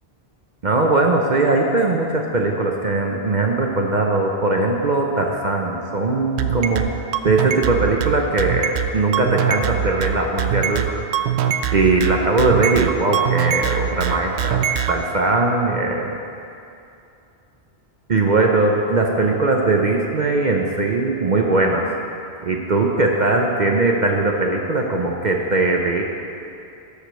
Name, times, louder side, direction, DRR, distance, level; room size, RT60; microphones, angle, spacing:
voice 1, 0.6-11.0 11.7-14.6 14.9-16.2 18.1-21.9 22.4-26.0, right 2 dB, 50° right, 1 dB, 0.8 m, -20 dB
sound 1, 6.4-14.9, right 9 dB, 80° right, 0.8 m, -22 dB
13.5 x 5.0 x 6.2 m, 2.7 s
omnidirectional pair, 1.1 m